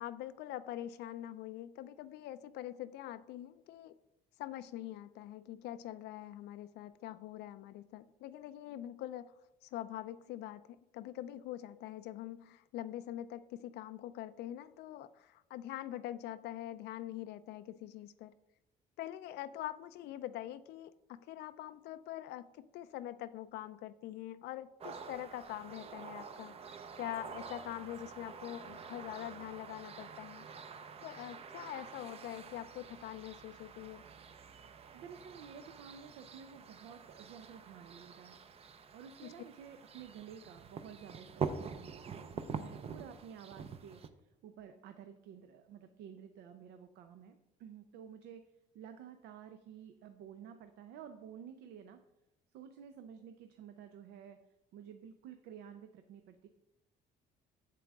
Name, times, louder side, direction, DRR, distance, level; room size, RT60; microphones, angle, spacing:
voice 1, 0.0-3.9 4.4-9.2 9.6-18.3 19.0-30.4 31.0-34.0 39.2-39.3, left 13 dB, 75° left, 12 dB, 0.4 m, -44 dB
sound 1, 24.8-44.1, right 6 dB, 35° right, 0.6 m, -46 dB
voice 2, 34.9-38.4 38.9-48.4 48.7-52.0 52.5-56.5, right 8 dB, 80° right, 8 dB, 0.6 m, -52 dB
7.5 x 7.5 x 3.5 m, 0.91 s
cardioid pair, 110°, 17 cm